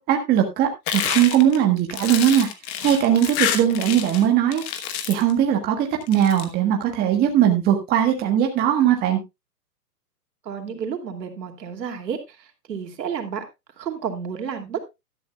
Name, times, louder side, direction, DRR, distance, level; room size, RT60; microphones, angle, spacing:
voice 1, 0.0-2.5 2.8-4.6 5.1-9.2, right 10 dB, 20° right, 3 dB, 1.4 m, -19 dB
sound 1, 0.9-4.2 4.5-5.3 6.0-6.4, left 9 dB, 25° left, 1.2 m, -27 dB
voice 2, 10.4-12.2 12.7-13.4 13.8-14.9, right 7 dB, 75° right, 5 dB, 2.9 m, -30 dB
12.5 x 12.0 x 2.3 m, 0.22 s
hypercardioid pair, 150°, 50 cm